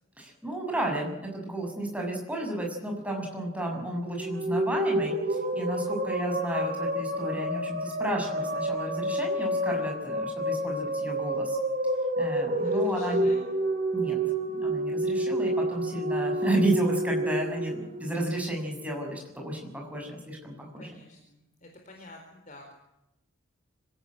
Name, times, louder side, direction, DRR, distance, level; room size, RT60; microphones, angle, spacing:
voice 1, 0.2-11.6 12.2-13.3 13.9-14.2 14.6-20.9, right 1 dB, 5° right, 0 dB, 7.0 m, -32 dB
sound 1, 4.1-18.5, right 1 dB, 40° right, 3.5 m, -29 dB
voice 2, 12.5-13.5 19.8-19.9 20.8-22.7, left 1 dB, 40° left, 2 dB, 4.2 m, -49 dB
25.5 x 17.5 x 9.0 m, 0.88 s
head